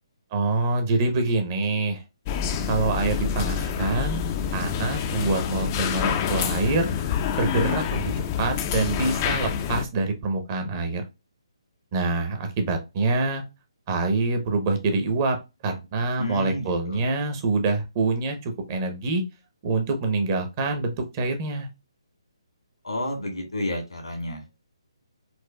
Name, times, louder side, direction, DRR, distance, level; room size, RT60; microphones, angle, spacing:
voice 1, 0.3-2.0 2.7-6.9 7.4-8.1 8.4-11.0 11.9-13.4 13.9-15.4 15.6-19.2 19.6-21.7, right 3 dB, 30° right, 5 dB, 0.8 m, -25 dB
sound 1, 2.3-9.8, left 8 dB, 25° left, 0.4 m, -27 dB
voice 2, 16.2-17.0 22.8-24.4, left 1 dB, 85° left, 2 dB, 1.6 m, -30 dB
4.2 x 2.3 x 2.2 m, 0.25 s
figure-of-eight pair, 145°, 3 cm